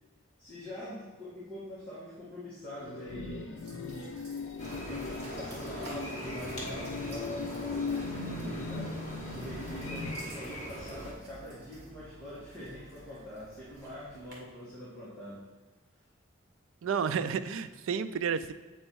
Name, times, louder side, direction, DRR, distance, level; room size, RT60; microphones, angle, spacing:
voice 1, 0.4-3.6 3.9-4.2 4.8-8.9 9.3-15.4, equal, 10° left, -11 dB, 1.7 m, -44 dB
sound 1, 2.8-10.1, left 4 dB, 80° left, 0.6 m, -39 dB
sound 2, 3.6-14.3, right 1 dB, 50° right, 1.8 m, -52 dB
sound 3, 4.6-11.1, equal, 35° left, 1.8 m, -42 dB
voice 2, 16.8-18.5, right 6 dB, 80° right, 12 dB, 0.4 m, -31 dB
7.9 x 4.3 x 4.6 m, 1.2 s
head